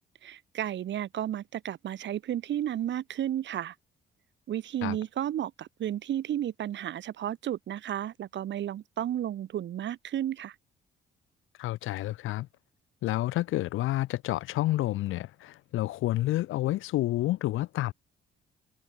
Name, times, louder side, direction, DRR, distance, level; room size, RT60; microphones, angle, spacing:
voice 1, 0.2-3.7 4.5-10.5, right 11 dB, 65° right, 1.4 m, -33 dB
voice 2, 11.6-12.5 13.0-17.9, left 16 dB, 90° left, 1.7 m, -29 dB
cardioid pair, 90°, 20 cm